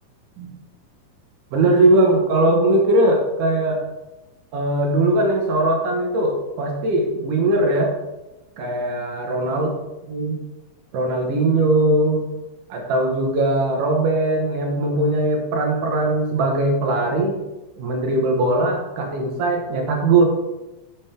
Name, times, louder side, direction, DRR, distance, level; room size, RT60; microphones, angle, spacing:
voice 1, 1.5-3.8 4.5-7.9 8.6-9.7 10.1-10.4 10.9-12.2 12.7-17.4 17.8-20.2, right 2 dB, 80° right, 1 dB, 2.8 m, -20 dB
11.5 x 7.1 x 3.4 m, 1.0 s
omnidirectional pair, 3.7 m